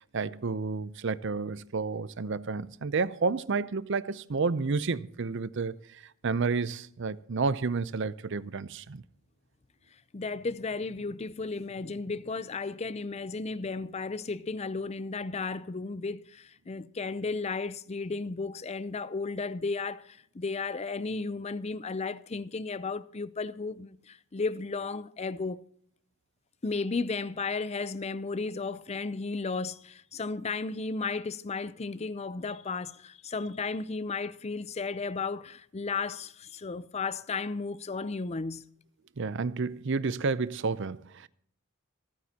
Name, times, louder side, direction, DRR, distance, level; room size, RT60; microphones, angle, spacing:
voice 1, 0.1-9.0 39.2-41.3, right 4 dB, 60° right, 0.6 m, -30 dB
voice 2, 10.1-25.6 26.6-38.6, left 4 dB, 30° left, 0.5 m, -34 dB
26.5 x 9.4 x 2.8 m
head